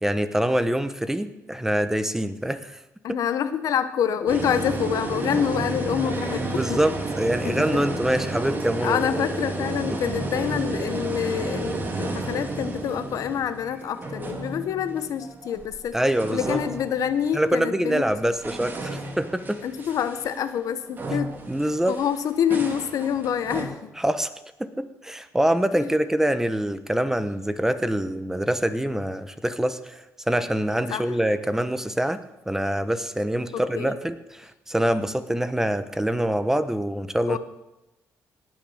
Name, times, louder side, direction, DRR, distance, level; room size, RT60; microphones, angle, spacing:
voice 1, 0.0-2.8 3.1-3.2 6.4-9.1 15.9-16.6 17.3-19.6 21.5-22.0 24.0-24.3 24.6-32.2 32.5-37.4, right 1 dB, 5° right, 11 dB, 1.0 m, -25 dB
voice 2, 3.0-6.8 7.4-7.8 8.8-16.0 16.3-18.0 19.6-21.3 21.9-23.9 30.9-31.1 33.7-34.0 37.3-37.4, left 8 dB, 70° left, 12 dB, 1.0 m, -26 dB
sound 1, 4.3-15.8 16.1-17.5 18.1-23.7, right 2 dB, 35° right, 2.5 m, -32 dB
18.5 x 6.1 x 7.2 m, 0.96 s
cardioid pair, 80°, 6 cm